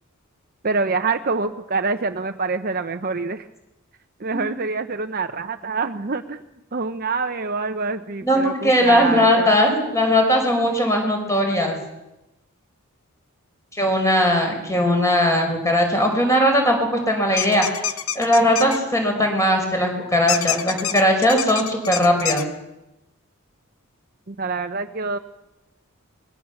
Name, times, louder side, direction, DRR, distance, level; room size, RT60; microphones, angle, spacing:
voice 1, 0.6-3.4 4.2-6.4 6.7-9.6 24.3-25.2, right 4 dB, 45° right, 6 dB, 0.8 m, -26 dB
voice 2, 8.2-11.8 13.7-17.7 18.2-22.4, equal, 15° left, 3 dB, 5.2 m, -19 dB
sound 1, 17.4-18.8 20.3-22.4, left 9 dB, 70° left, 1.2 m, -26 dB
26.0 x 21.5 x 7.2 m, 0.93 s
head